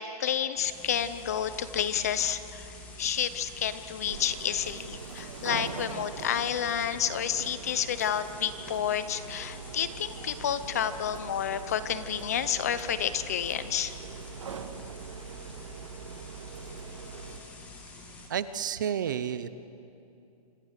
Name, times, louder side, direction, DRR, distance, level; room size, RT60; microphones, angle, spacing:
voice 1, 0.0-2.7 3.0-13.9, left 9 dB, 25° left, 13 dB, 0.6 m, -30 dB
sound 1, 0.6-18.3, left 2 dB, 5° left, 1.9 m, -48 dB
sound 2, 4.1-17.4, right 6 dB, 50° right, 1.7 m, -43 dB
voice 2, 18.3-19.5, right 8 dB, 30° right, 14 dB, 0.7 m, -31 dB
26.5 x 26.0 x 6.6 m, 2.7 s
hypercardioid pair, 175°, 20 cm